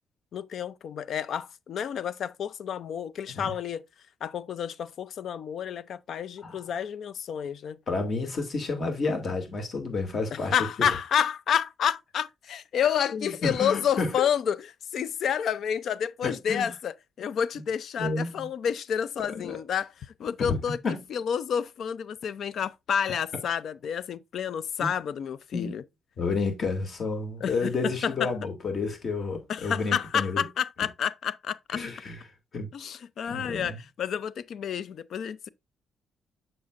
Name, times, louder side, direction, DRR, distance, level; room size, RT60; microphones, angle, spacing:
voice 1, 0.3-3.8 4.2-7.8 10.3-14.6 14.9-19.9 20.2-20.8 21.1-25.8 27.4-28.3 29.5-31.8 32.7-35.5, left 8 dB, 65° left, 0.5 m, -29 dB
voice 2, 7.9-10.6 13.1-14.1 16.2-16.7 18.0-18.5 19.3-19.6 20.4-20.6 20.8-21.0 24.8-24.9 25.5-25.7 26.2-30.4 31.7-32.2 32.5-32.7 33.3-33.8, left 3 dB, 45° left, 2.6 m, -30 dB
7.2 x 6.6 x 2.5 m
cardioid pair, 90°, 0 cm